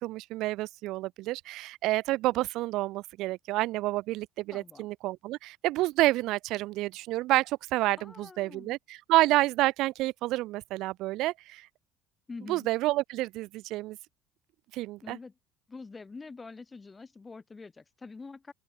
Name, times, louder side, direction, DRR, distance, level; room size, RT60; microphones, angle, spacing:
voice 1, 0.0-11.7 12.5-14.0 14.7-15.2, right 18 dB, 70° right, 1.3 m, -29 dB
voice 2, 4.5-4.9 8.0-8.8 12.3-12.7 15.0-15.3 15.7-18.5, left 4 dB, 25° left, 3.7 m, -45 dB
open air
supercardioid pair, 80°, 0 cm